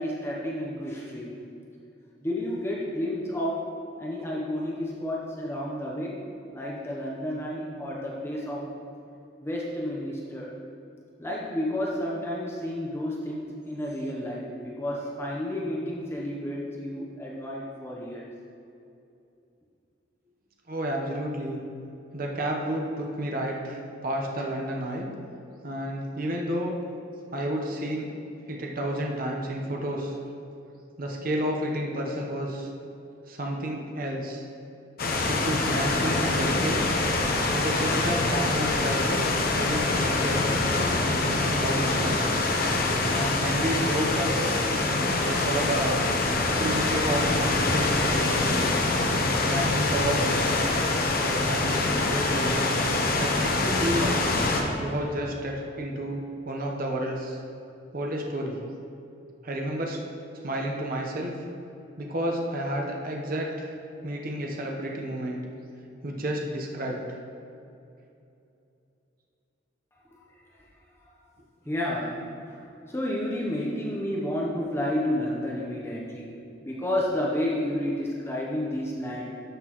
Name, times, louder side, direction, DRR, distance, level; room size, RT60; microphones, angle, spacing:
voice 1, 0.0-1.3 2.2-3.6 4.0-6.2 6.5-8.7 9.4-10.6 11.2-18.3 70.1-70.2 71.7-79.4, left 1 dB, 15° left, -4 dB, 0.8 m, -31 dB
voice 2, 20.7-21.6 22.1-25.1 25.6-26.7 27.3-28.1 28.5-30.2 31.0-32.7 33.3-34.5 35.3-40.5 41.1-42.2 43.1-44.6 45.2-46.0 46.5-48.8 49.5-50.4 51.2-52.9 53.2-54.1 54.8-57.4 57.9-58.6 59.4-60.0 60.4-61.3 62.0-63.7 64.0-65.4 66.0-67.2, right 1 dB, 50° right, 0 dB, 1.0 m, -31 dB
sound 1, 35.0-54.6, left 2 dB, 55° left, 0.9 m, -25 dB
12.0 x 6.0 x 3.0 m, 2.7 s
head